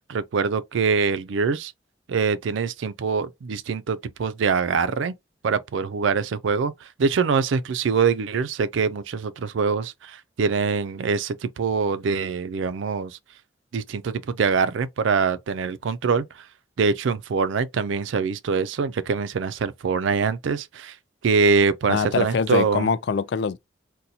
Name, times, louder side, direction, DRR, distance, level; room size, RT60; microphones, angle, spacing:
voice 1, 0.0-1.7 2.1-5.1 5.4-13.2 13.7-16.5 16.8-21.0 21.2-22.9, right 5 dB, 80° right, 0.4 m, -24 dB
voice 2, 21.9-23.6, left 5 dB, 65° left, 0.3 m, -24 dB
2.7 x 2.2 x 4.1 m
head